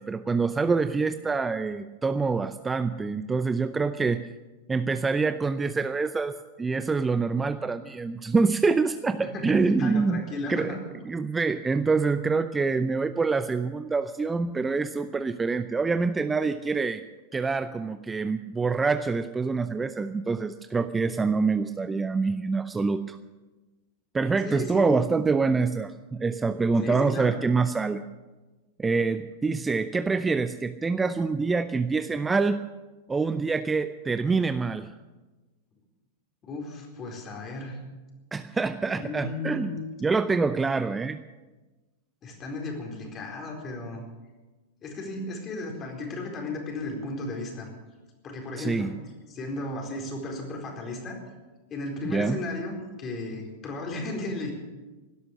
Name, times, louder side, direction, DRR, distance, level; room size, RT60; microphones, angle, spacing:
voice 1, 0.0-4.2 4.7-10.2 10.5-10.7 11.1-17.0 17.3-23.2 24.1-28.0 28.8-32.6 33.1-34.9 38.3-39.8 40.0-41.2 48.6-48.9 52.0-52.4, right 4 dB, 15° right, 11 dB, 0.6 m, -26 dB
voice 2, 9.2-10.8 24.4-25.0 26.8-27.4 36.4-37.8 39.0-39.8 42.2-44.0 44.8-47.7 48.2-48.9 49.3-51.2 51.7-54.5, left 2 dB, 30° left, 1 dB, 4.4 m, -35 dB
17.0 x 12.5 x 6.5 m, 1.2 s
figure-of-eight pair, 95°, 0 cm